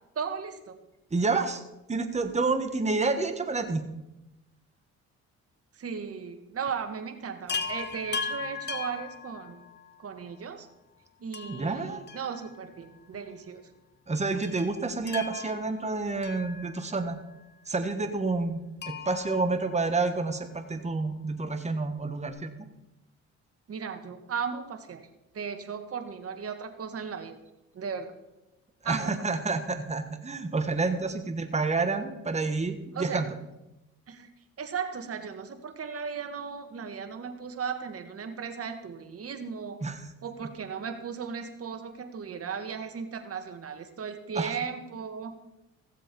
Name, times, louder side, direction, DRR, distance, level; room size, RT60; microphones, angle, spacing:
voice 1, 0.2-0.8 5.7-9.6 10.0-10.7 11.2-13.6 23.7-25.0 25.3-27.4 27.7-28.1 28.9-29.1 32.9-33.2 34.1-34.3 34.6-39.8 40.2-45.3, right 6 dB, 50° right, 7 dB, 1.6 m, -36 dB
voice 2, 1.1-1.6 1.9-3.8 11.5-12.0 14.1-17.2 17.7-22.5 28.8-33.3 39.8-40.0 44.3-44.5, right 3 dB, 20° right, 7 dB, 1.4 m, -29 dB
Chime, 7.5-9.9 11.3-12.9 13.1-13.2 14.4-17.1 18.8-20.4 22.0-22.1 22.3-22.4, left 5 dB, 35° left, 1.0 m, -38 dB
15.5 x 7.5 x 5.4 m, 0.94 s
cardioid pair, 90°, 30 cm